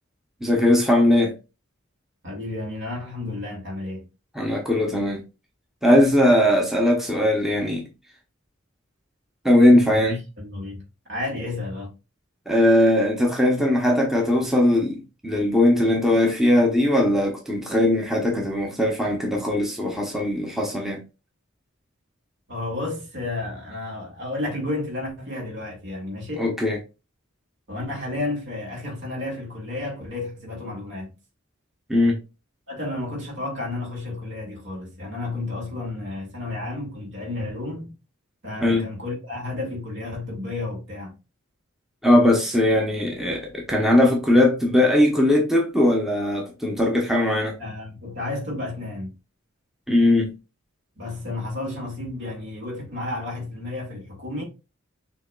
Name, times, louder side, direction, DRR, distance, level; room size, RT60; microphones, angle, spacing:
voice 1, 0.4-1.3 4.3-5.2 5.8-7.9 9.4-10.2 12.5-21.0 26.4-26.8 31.9-32.2 38.6-38.8 42.0-47.5 49.9-50.3, left 1 dB, ahead, 0.7 m, -19 dB
voice 2, 2.2-4.1 9.9-10.8 11.1-11.9 22.5-26.5 27.7-31.1 32.7-37.9 38.4-41.1 47.6-49.1 51.0-54.4, left 2 dB, 60° right, 2.1 m, -32 dB
6.2 x 2.9 x 2.2 m
head